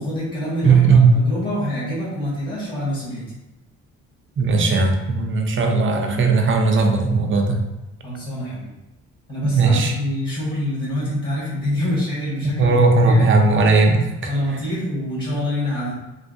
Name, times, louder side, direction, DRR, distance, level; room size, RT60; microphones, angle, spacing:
voice 1, 0.0-3.2 8.0-8.7 9.3-12.7 13.0-13.3 14.3-15.9, left 1 dB, 35° left, -8 dB, 1.5 m, -26 dB
voice 2, 0.6-1.1 4.4-7.6 9.4-9.9 12.4-14.3, right 4 dB, 40° right, 3 dB, 0.6 m, -17 dB
3.3 x 2.7 x 2.7 m, 1.0 s
cardioid pair, 90°, 30 cm